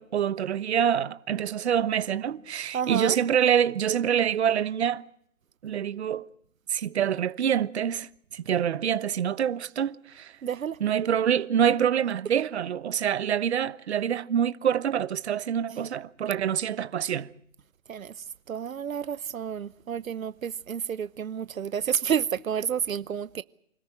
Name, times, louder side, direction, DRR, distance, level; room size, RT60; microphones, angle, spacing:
voice 1, 0.0-5.0 5.6-6.3 6.7-10.4 10.8-17.3, right 9 dB, 55° right, 1.1 m, -26 dB
voice 2, 2.7-3.2 10.4-10.8 17.9-18.1 18.5-23.4, right 8 dB, 85° right, 0.9 m, -30 dB
25.0 x 14.0 x 9.8 m
hypercardioid pair, 155°, 40 cm